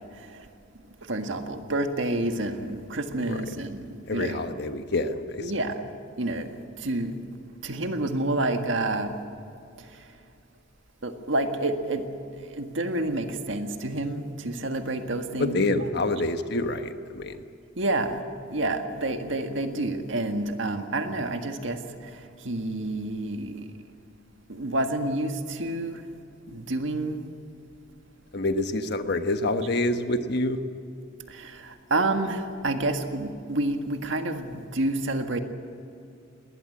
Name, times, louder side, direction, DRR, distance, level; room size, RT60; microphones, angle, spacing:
voice 1, 0.1-0.5 1.0-4.4 5.4-5.9 6.2-7.3 7.6-9.2 9.8-10.1 11.0-12.0 12.4-15.6 17.8-18.2 18.5-23.7 24.5-26.0 26.5-27.3 31.3-35.4, right 2 dB, 70° right, 6 dB, 1.7 m, -29 dB
voice 2, 4.1-5.5 15.4-17.4 28.3-30.6, left 2 dB, 55° left, 8 dB, 1.2 m, -27 dB
20.5 x 19.0 x 8.6 m, 2.5 s
head